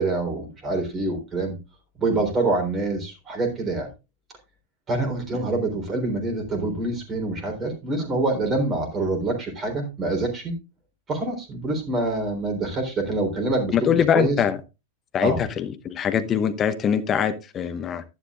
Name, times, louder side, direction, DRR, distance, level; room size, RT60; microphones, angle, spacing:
voice 1, 0.0-1.6 2.0-3.9 4.9-10.6 11.1-14.4 15.2-15.4, right 2 dB, 25° right, 3.7 m, -26 dB
voice 2, 13.7-14.6 15.1-18.0, left 8 dB, 25° left, 0.9 m, -23 dB
11.5 x 11.0 x 2.4 m
figure-of-eight pair, 90°, 0 cm